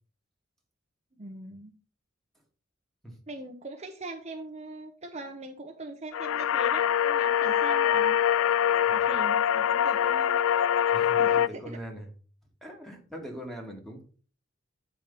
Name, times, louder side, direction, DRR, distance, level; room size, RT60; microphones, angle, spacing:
voice 1, 1.2-1.7 3.3-8.2 8.9-10.4 11.2-11.8, right 2 dB, 35° right, 2 dB, 0.9 m, -41 dB
sound 1, 6.1-11.5, left 9 dB, 90° left, 0.3 m, -24 dB
voice 2, 10.9-12.1 12.6-14.0, right 1 dB, ahead, 1 dB, 1.9 m, -41 dB
9.0 x 4.6 x 5.4 m, 0.40 s
head